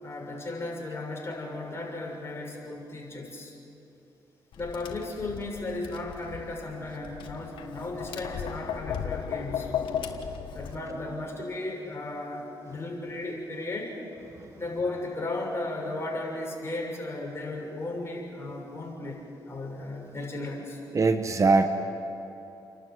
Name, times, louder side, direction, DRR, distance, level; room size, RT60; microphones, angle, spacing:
voice 1, 0.0-3.5 4.6-9.7 10.5-13.9 14.5-20.8, left 2 dB, 30° left, -1 dB, 6.5 m, -35 dB
Tap, 4.5-10.7, left 8 dB, 85° left, 1.5 m, -36 dB
voice 2, 20.9-21.7, right 3 dB, 40° right, 8 dB, 1.2 m, -22 dB
29.5 x 12.0 x 9.4 m, 2.9 s
cardioid pair, 80°, 8 cm